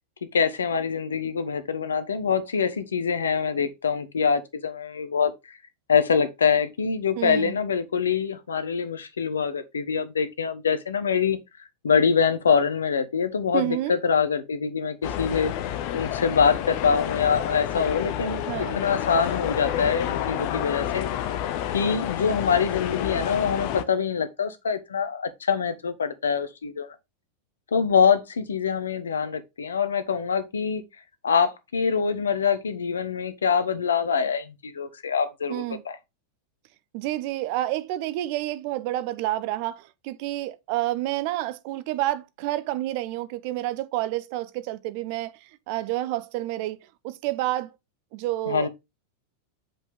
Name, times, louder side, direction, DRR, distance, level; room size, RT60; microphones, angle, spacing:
voice 1, 0.3-5.6 5.9-11.4 11.8-15.5 15.9-21.1 21.7-26.9 27.7-30.8 31.2-36.0 48.5-48.7, left 6 dB, 70° left, 1.0 m, -24 dB
voice 2, 7.2-7.6 13.5-14.0 18.5-18.8 35.5-35.8 36.9-46.8 47.0-47.7 48.1-48.7, right 15 dB, 45° right, 0.7 m, -29 dB
sound 1, 15.0-23.8, left 11 dB, 45° left, 0.7 m, -29 dB
7.2 x 5.3 x 3.5 m
figure-of-eight pair, 90°, 0 cm